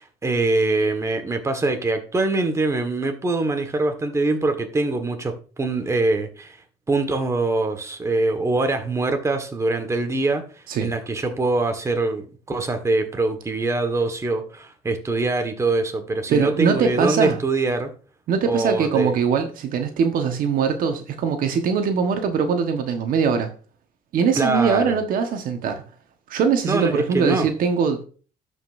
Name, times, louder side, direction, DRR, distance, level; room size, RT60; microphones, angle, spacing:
voice 1, 0.0-6.6 6.9-10.4 10.8-17.9 18.4-19.1 24.3-25.0 26.6-27.5, right 2 dB, 20° right, 1.6 m, -23 dB
voice 2, 16.3-17.4 18.3-23.5 24.1-25.8 26.3-28.0, right 6 dB, 65° right, 1.3 m, -22 dB
12.5 x 5.3 x 2.6 m
cardioid pair, 115°, 16 cm